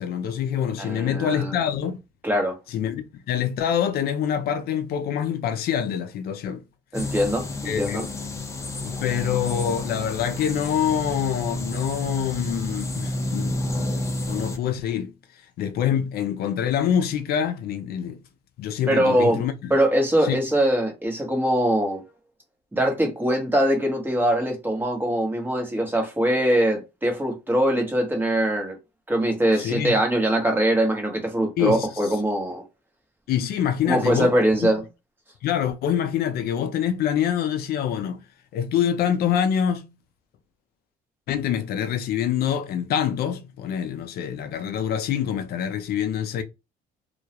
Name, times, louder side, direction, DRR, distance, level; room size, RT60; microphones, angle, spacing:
voice 1, 0.0-2.0 2.7-6.6 7.7-8.1 8.8-13.5 14.3-15.1 15.6-18.2 18.6-19.7 20.2-20.4 29.6-29.9 31.6-31.9 33.3-34.3 34.6-34.7 35.4-38.2 38.5-39.9 41.3-46.4, left 9 dB, 65° left, 0.4 m, -25 dB
voice 2, 0.8-1.6 2.2-2.6 6.9-8.0 18.9-19.4 19.7-22.0 22.7-28.8 29.1-32.6 33.8-34.8, right 1 dB, 10° right, 0.9 m, -22 dB
sound 1, 6.9-14.6, left 1 dB, 15° left, 0.6 m, -30 dB
2.2 x 2.1 x 2.8 m
cardioid pair, 110°, 17 cm